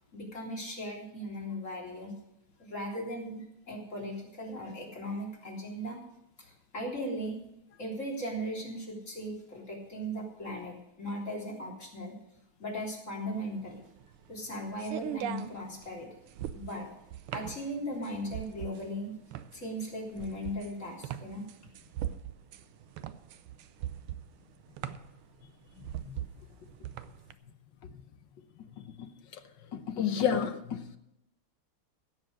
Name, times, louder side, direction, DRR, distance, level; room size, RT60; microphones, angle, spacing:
voice 1, 0.1-2.2 2.6-6.0 6.4-7.4 7.8-12.2 12.6-13.8 14.3-16.2 16.5-16.9 17.3-19.1 19.5-21.4, equal, 35° left, -2 dB, 3.9 m, -38 dB
sound 1, 13.4-27.3, right 11 dB, 90° right, 1.7 m, -40 dB
voice 2, 29.7-31.0, left 8 dB, 60° left, 9 dB, 1.6 m, -30 dB
16.5 x 7.7 x 6.4 m, 0.83 s
omnidirectional pair, 2.4 m